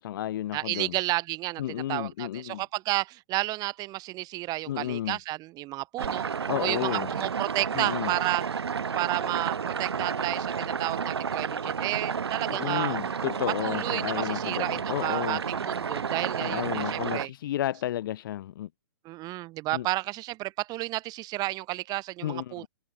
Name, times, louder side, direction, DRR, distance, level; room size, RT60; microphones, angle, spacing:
voice 1, 0.0-1.0 1.6-2.6 4.7-5.2 6.5-7.1 7.7-8.1 12.5-15.4 16.4-18.7 19.7-19.9 22.2-22.7, left 12 dB, 55° left, 3.5 m, -32 dB
voice 2, 0.5-6.3 6.6-8.4 8.9-13.0 13.6-17.3 19.0-22.7, right 19 dB, 30° right, 7.6 m, -32 dB
sound 1, 6.0-17.3, right 6 dB, 90° right, 1.0 m, -31 dB
hypercardioid pair, 135°, 13 cm